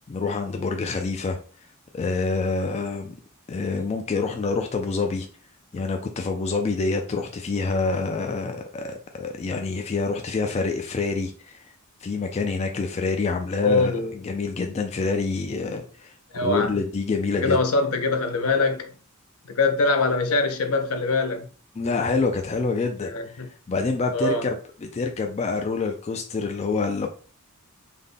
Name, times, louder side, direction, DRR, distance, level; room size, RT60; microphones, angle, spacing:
voice 1, 0.0-1.4 1.9-3.1 3.5-5.3 5.7-11.7 12.0-16.1 16.4-17.6 21.8-27.1, left 4 dB, 30° left, 0.3 m, -27 dB
voice 2, 13.6-14.1 16.3-16.7 17.3-18.9 19.5-21.4 23.0-23.5 24.1-24.4, left 3 dB, 70° left, 0.6 m, -23 dB
3.4 x 2.1 x 3.8 m
head